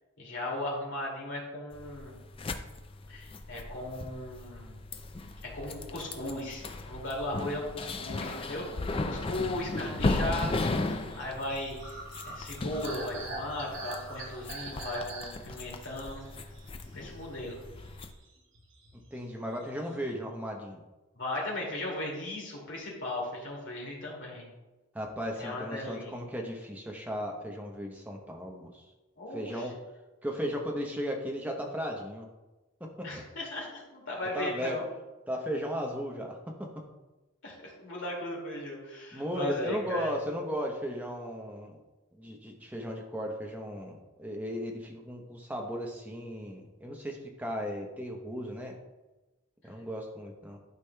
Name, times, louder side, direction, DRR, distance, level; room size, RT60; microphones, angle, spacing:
voice 1, 0.2-2.2 3.1-4.7 5.4-8.7 9.0-11.8 12.3-16.2 16.9-17.6 21.1-24.5 25.4-26.1 29.2-29.7 33.0-34.8 37.4-40.2, left 1 dB, 60° left, -3 dB, 2.4 m, -37 dB
sound 1, 1.7-18.1, left 2 dB, 25° left, 0.3 m, -36 dB
sound 2, 10.9-17.4 17.8-19.2 19.4-20.1, right 2 dB, 55° right, 1.2 m, -44 dB
voice 2, 19.1-20.8 24.9-28.8 29.3-29.8 30.2-32.3 32.8-33.1 34.3-34.8 35.3-36.7 39.1-41.8 42.2-48.7 49.6-50.6, equal, 5° right, 1 dB, 0.8 m, -36 dB
12.0 x 4.9 x 2.3 m, 1.1 s
head